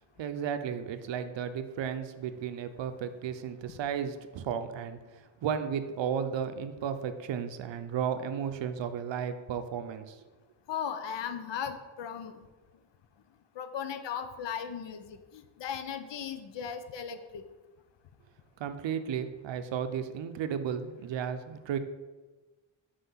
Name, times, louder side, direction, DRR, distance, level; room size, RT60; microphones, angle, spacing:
voice 1, 0.2-10.2 18.6-21.8, right 8 dB, 70° right, 9 dB, 0.6 m, -34 dB
voice 2, 10.7-12.4 13.6-17.4, left 8 dB, 65° left, 9 dB, 0.7 m, -37 dB
5.6 x 3.3 x 5.6 m, 1.2 s
cardioid pair, 105°, 47 cm